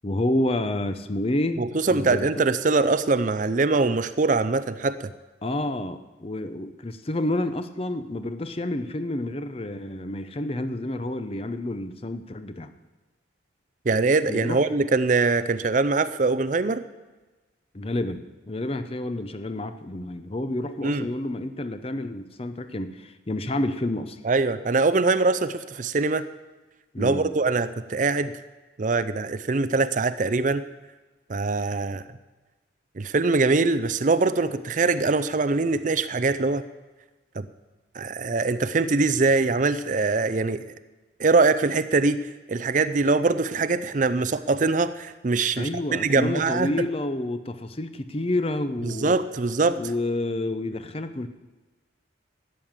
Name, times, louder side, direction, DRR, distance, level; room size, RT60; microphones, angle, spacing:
voice 1, 0.0-1.6 1.9-2.4 5.4-12.7 14.3-14.7 17.7-24.2 26.9-27.3 45.6-49.2 49.8-51.3, left 1 dB, 30° left, 10 dB, 0.7 m, -29 dB
voice 2, 1.6-5.1 13.9-16.8 20.8-21.1 24.2-26.3 27.0-28.3 28.8-30.6 31.3-32.0 33.0-36.6 37.4-37.5 37.9-40.6 41.2-42.2 42.5-46.7 48.9-49.8, right 3 dB, 40° right, 13 dB, 0.5 m, -23 dB
13.0 x 9.2 x 7.3 m, 1.2 s
head